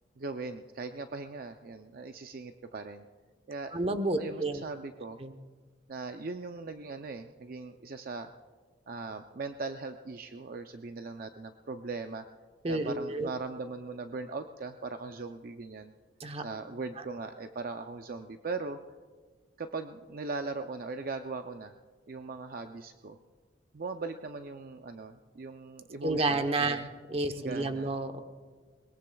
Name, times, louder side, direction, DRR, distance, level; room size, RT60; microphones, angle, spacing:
voice 1, 0.2-3.1 3.5-5.2 5.9-8.3 8.9-12.3 12.7-15.9 16.4-18.8 19.6-21.7 22.1-23.2 23.7-26.8 27.3-27.9, right 3 dB, 55° right, 7 dB, 0.5 m, -39 dB
voice 2, 3.7-4.6 5.2-5.4 12.6-13.3 16.2-16.4 26.0-28.2, right 2 dB, 35° right, 8 dB, 0.9 m, -30 dB
21.5 x 21.0 x 2.3 m, 1.5 s
head